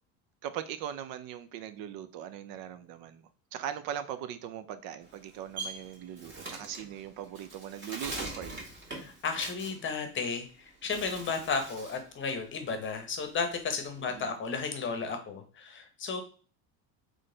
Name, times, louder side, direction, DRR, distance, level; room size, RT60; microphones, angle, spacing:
voice 1, 0.4-8.7 14.0-14.3, right 10 dB, 55° right, 11 dB, 0.5 m, -40 dB
Bird, 5.0-10.5 10.8-12.1 12.4-14.2, right 2 dB, 30° right, 1.6 m, -43 dB
voice 2, 8.9-10.4 10.8-16.2, left 5 dB, 30° left, 6 dB, 0.9 m, -33 dB
3.8 x 3.3 x 3.8 m, 0.38 s
cardioid pair, 135°, 42 cm